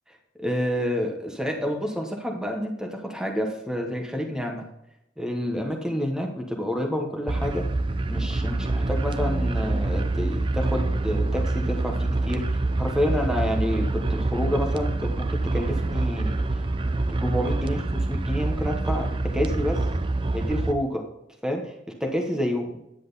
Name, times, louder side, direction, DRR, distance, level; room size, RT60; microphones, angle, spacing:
voice 1, 0.1-4.7 5.2-7.6 8.1-15.1 15.5-16.6 17.1-19.1 19.3-19.8 20.3-21.0 21.4-21.7 22.1-22.8, equal, 5° right, 1 dB, 1.1 m, -29 dB
sound 1, 7.3-20.7, right 2 dB, 25° right, 0.4 m, -26 dB
10.0 x 7.6 x 4.0 m, 0.83 s
head